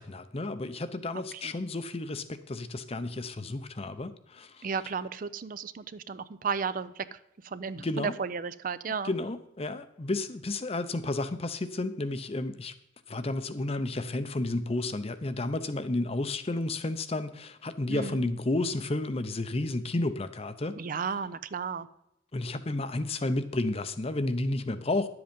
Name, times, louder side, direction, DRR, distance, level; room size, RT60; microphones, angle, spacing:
voice 1, 0.0-4.7 7.8-8.1 9.0-12.7 13.1-20.8 22.3-25.1, left 2 dB, 30° left, 12 dB, 0.7 m, -32 dB
voice 2, 4.6-7.2 7.4-9.1 17.9-18.3 20.8-21.9, right 5 dB, 45° right, 15 dB, 0.5 m, -34 dB
11.0 x 7.9 x 5.2 m, 0.81 s
head